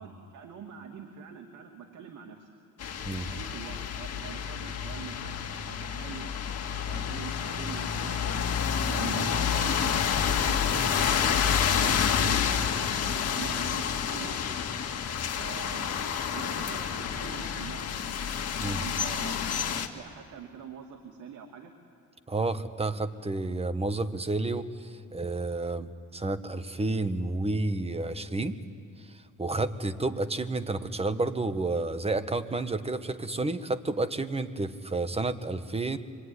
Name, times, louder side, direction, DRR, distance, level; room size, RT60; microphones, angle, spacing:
voice 1, 0.0-2.5 3.2-5.4 5.7-6.4 6.8-8.4 8.8-12.4 13.3-14.6 15.3-18.1 18.8-21.7, right 7 dB, 80° right, 2 dB, 2.5 m, -44 dB
sound 1, 2.8-19.9, left 7 dB, 55° left, 2.0 m, -29 dB
voice 2, 22.3-28.6 29.4-36.0, right 2 dB, 20° right, 10 dB, 1.4 m, -30 dB
25.5 x 23.5 x 9.8 m, 2.4 s
cardioid pair, 90°, 30 cm